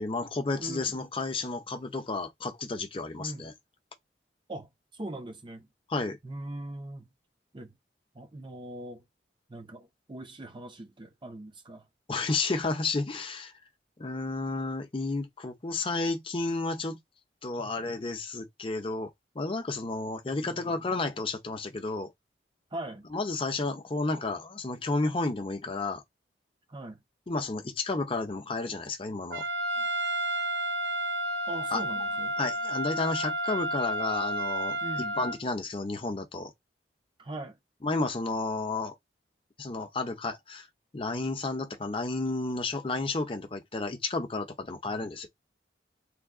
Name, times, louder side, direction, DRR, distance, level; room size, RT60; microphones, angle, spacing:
voice 1, 0.0-3.5 5.9-6.2 12.1-13.5 14.0-17.0 17.4-22.1 23.1-26.0 27.3-29.5 31.7-31.8 32.4-36.5 37.8-39.0 39.6-40.7 40.9-45.3, left 3 dB, 30° left, 0.6 m, -32 dB
voice 2, 0.6-1.0 3.2-3.5 4.5-5.7 6.2-7.1 7.5-7.7 8.1-9.0 9.5-11.8 17.6-17.8 20.3-20.8 22.7-23.1 26.7-27.0 29.8-29.9 31.5-32.3 34.8-35.2 37.2-37.6 44.8-45.1, right 1 dB, 25° right, 0.6 m, -41 dB
Trumpet, 29.3-35.4, right 1 dB, 70° right, 0.7 m, -31 dB
3.3 x 2.3 x 3.5 m
head